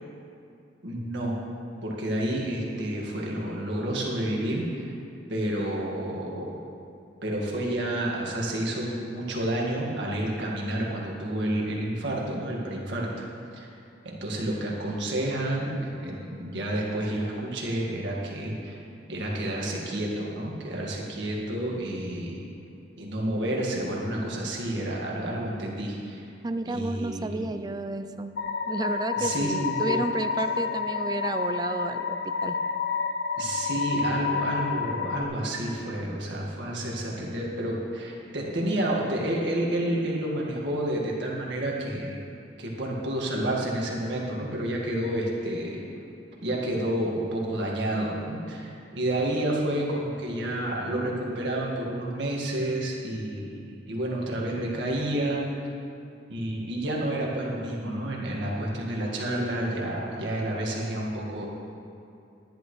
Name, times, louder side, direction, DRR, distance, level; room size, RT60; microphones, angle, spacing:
voice 1, 0.8-1.4 1.8-4.9 5.3-6.6 7.2-13.1 13.5-13.7 14.0-18.8 19.1-22.4 23.0-26.3 26.7-27.4 29.2-30.0 33.4-42.2 42.6-45.8 46.4-55.4 56.3-61.5, right 1 dB, 70° right, -3 dB, 1.9 m, -30 dB
voice 2, 26.4-28.3 28.7-32.6, right 2 dB, 20° right, 9 dB, 0.4 m, -31 dB
sound 1, 28.4-35.2, left 5 dB, 55° left, 0.5 m, -29 dB
13.5 x 10.5 x 3.3 m, 2.6 s
head